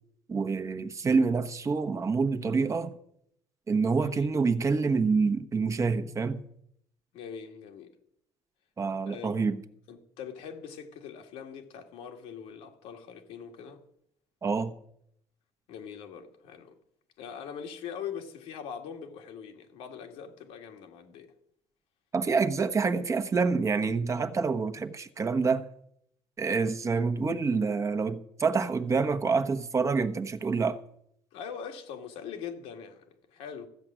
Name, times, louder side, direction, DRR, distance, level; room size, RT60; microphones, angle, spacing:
voice 1, 0.3-2.9 3.7-6.4 8.8-9.6 14.4-14.7 22.1-25.7 26.4-30.8, right 4 dB, 30° right, 1.1 m, -27 dB
voice 2, 4.0-4.3 7.1-8.0 9.1-9.4 9.9-13.8 15.7-16.7 17.2-21.3 31.3-33.7, left 7 dB, 80° left, 2.0 m, -42 dB
14.0 x 7.7 x 7.5 m
cardioid pair, 95°, 10 cm